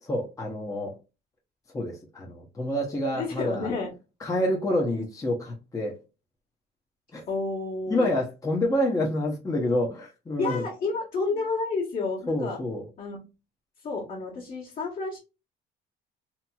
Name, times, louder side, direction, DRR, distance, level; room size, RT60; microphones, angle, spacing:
voice 1, 0.0-1.0 1.7-3.7 4.2-6.0 7.1-7.2 7.9-10.6 12.3-12.8, left 1 dB, 20° left, -1 dB, 0.7 m, -28 dB
voice 2, 3.1-3.9 7.3-8.1 10.4-12.6 13.0-13.2 13.8-15.2, left 3 dB, 50° left, -5 dB, 1.3 m, -30 dB
2.9 x 2.8 x 2.2 m, 0.29 s
cardioid pair, 110°, 17 cm